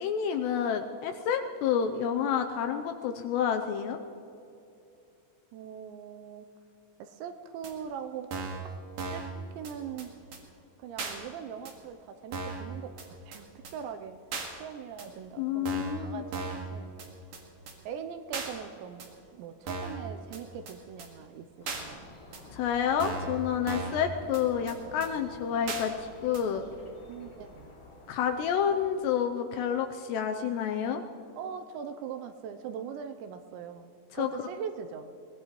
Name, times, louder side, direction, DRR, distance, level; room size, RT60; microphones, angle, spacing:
voice 1, 0.0-4.0 15.4-16.2 22.5-26.6 28.1-31.0 34.1-34.3, left 8 dB, 85° left, 6 dB, 2.6 m, -29 dB
voice 2, 5.5-6.5 7.0-8.3 8.6-8.7 9.1-9.3 9.6-10.1 10.8-14.2 14.5-16.9 17.9-19.1 19.3-22.1 27.0-27.7 31.4-35.1, right 7 dB, 85° right, 7 dB, 2.8 m, -41 dB
sound 1, 7.6-7.7 8.3-8.6 9.0-9.3 9.6-9.7 10.0-10.1 10.3-10.4 11.0-11.1 11.6-11.7 12.3-12.6 13.0-13.1 13.3-13.4 13.6-13.7 14.3-14.5 15.0-15.1 15.6-16.0 16.3-16.7 17.0-17.1 17.3-17.4 17.7-17.8 18.3-18.5 19.0-19.1 19.7-20.0 20.3-20.4 20.7-20.8 21.0-21.1 21.7-21.8 22.3-22.4 23.0-23.3 23.7-24.0 24.3-24.4 24.7-24.8 25.0-25.1 25.7-25.8 26.3-26.4, right 4 dB, 55° right, 2.7 m, -36 dB
sound 2, 21.6-28.8, left 2 dB, 35° left, 2.5 m, -50 dB
23.5 x 18.5 x 3.1 m, 2.7 s
omnidirectional pair, 5.4 m